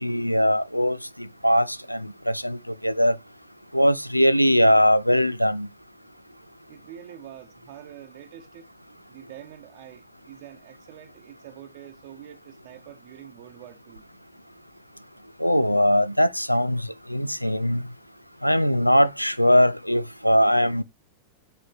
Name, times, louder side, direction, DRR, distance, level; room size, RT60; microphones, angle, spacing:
voice 1, 0.0-3.2 3.7-5.7 15.4-17.8 18.4-20.8, equal, 90° left, 0.4 m, -21 dB
voice 2, 6.7-8.7 9.1-14.0, right 11 dB, 50° right, 0.9 m, -45 dB
7.7 x 4.3 x 4.5 m
figure-of-eight pair, 90°, 0 cm